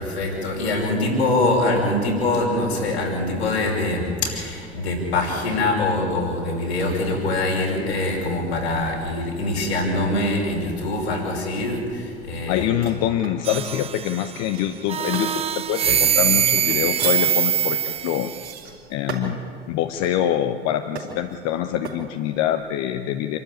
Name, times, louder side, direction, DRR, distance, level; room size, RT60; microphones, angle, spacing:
voice 1, 0.0-12.7, left 2 dB, 80° left, -2 dB, 5.7 m, -24 dB
voice 2, 12.5-15.3 15.5-18.3 18.9-19.4 19.7-23.4, left 11 dB, 55° left, 7 dB, 1.1 m, -25 dB
sound 1, 12.8-13.8 14.5-15.4 15.9-19.4 20.0-20.3 21.0-21.4 21.8-22.0, right 5 dB, 75° right, 4.3 m, -36 dB
sound 2, 13.4-14.4 14.9-18.5, right 8 dB, 20° right, 0.4 m, -22 dB
27.5 x 12.5 x 9.1 m, 2.3 s
figure-of-eight pair, 65°, 32 cm